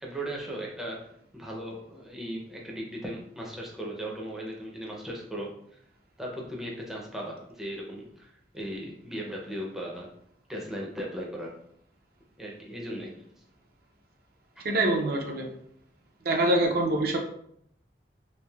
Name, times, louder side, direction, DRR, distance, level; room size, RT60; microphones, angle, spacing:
voice 1, 0.0-5.8 6.2-10.1 10.5-11.5 12.4-13.3, right 1 dB, 5° right, -3 dB, 0.4 m, -37 dB
voice 2, 14.6-15.5 16.2-17.2, right 1 dB, 55° right, 3 dB, 0.5 m, -25 dB
3.2 x 2.4 x 2.2 m, 0.69 s
head